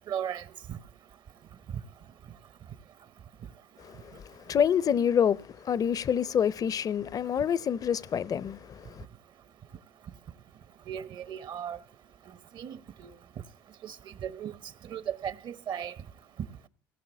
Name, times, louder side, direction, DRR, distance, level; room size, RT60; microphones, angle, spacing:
voice 1, 0.1-0.8 10.9-11.8 12.5-13.1 13.8-14.0 14.2-14.5 14.8-15.9, right 9 dB, 55° right, 0.9 m, -36 dB
voice 2, 3.8-9.0, left 8 dB, 40° left, 0.5 m, -27 dB
17.5 x 6.0 x 8.1 m
hypercardioid pair, 70°, 9 cm